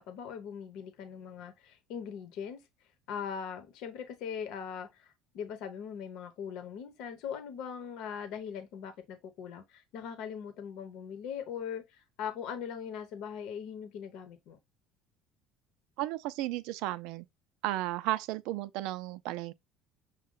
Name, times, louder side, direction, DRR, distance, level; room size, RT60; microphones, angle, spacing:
voice 1, 0.0-2.6 3.1-14.6, left 7 dB, 65° left, 0.9 m, -40 dB
voice 2, 16.0-17.3 17.6-19.5, right 15 dB, 75° right, 0.4 m, -34 dB
6.4 x 2.2 x 3.8 m
cardioid pair, 140°, 0 cm